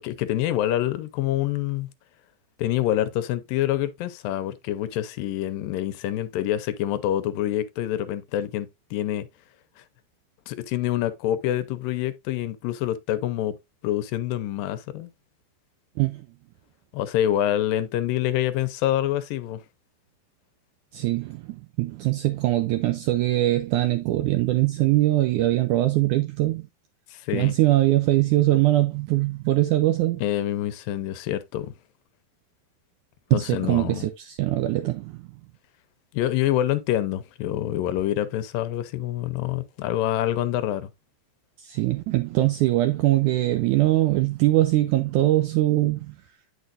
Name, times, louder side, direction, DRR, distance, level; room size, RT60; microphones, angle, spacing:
voice 1, 0.0-1.9 2.6-9.3 10.5-13.6 13.8-15.1 16.9-19.6 27.1-27.6 30.2-31.7 33.3-34.1 36.1-40.9, left 12 dB, 80° left, 2.3 m, -26 dB
voice 2, 20.9-26.7 27.3-30.2 33.3-35.2 41.6-46.1, right 16 dB, 80° right, 1.7 m, -22 dB
9.2 x 6.4 x 2.5 m
omnidirectional pair, 4.1 m